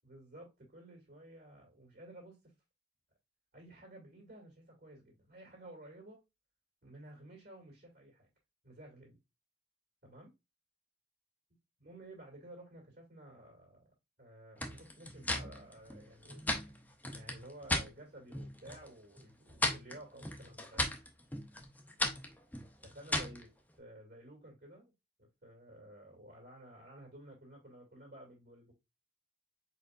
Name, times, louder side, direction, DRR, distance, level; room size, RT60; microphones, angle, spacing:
voice 1, 0.0-2.4 3.5-6.2 6.8-8.3 8.6-9.2 10.0-10.3 11.8-13.8 14.2-16.7 17.1-20.9 22.8-23.5 23.8-24.9 25.2-28.7, right 1 dB, 55° right, 2.1 m, -53 dB
sound 1, 14.6-17.9 18.3-18.9 19.2-23.4, left 1 dB, 10° left, 0.8 m, -37 dB
4.5 x 4.3 x 2.5 m
head